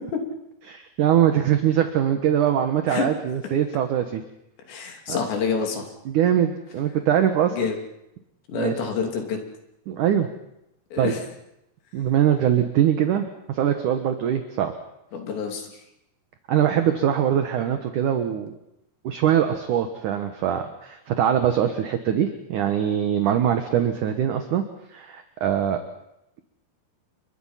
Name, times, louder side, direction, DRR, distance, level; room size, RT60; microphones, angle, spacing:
voice 1, 0.7-4.2 5.1-5.2 6.1-7.6 8.5-8.7 9.9-10.3 11.0-11.1 11.9-14.7 16.5-18.6 19.0-24.6 24.9-25.8, right 10 dB, 65° right, 7 dB, 2.3 m, -22 dB
voice 2, 4.7-5.9 7.5-7.8 8.5-9.5 10.9-11.2 15.1-15.7, left 5 dB, 85° left, 3 dB, 5.2 m, -27 dB
29.5 x 23.5 x 5.8 m, 0.84 s
omnidirectional pair, 4.9 m